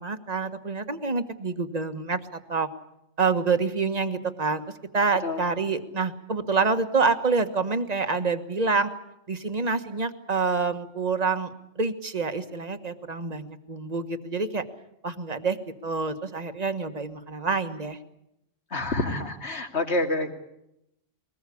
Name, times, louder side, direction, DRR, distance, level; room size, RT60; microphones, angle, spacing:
voice 1, 0.0-2.7 3.2-4.6 4.9-8.9 9.3-11.5 11.8-14.6 15.0-18.0, right 4 dB, 35° right, 9 dB, 1.5 m, -27 dB
voice 2, 18.7-20.3, left 2 dB, 55° left, 4 dB, 2.7 m, -27 dB
22.0 x 19.5 x 8.5 m, 0.81 s
omnidirectional pair, 1.3 m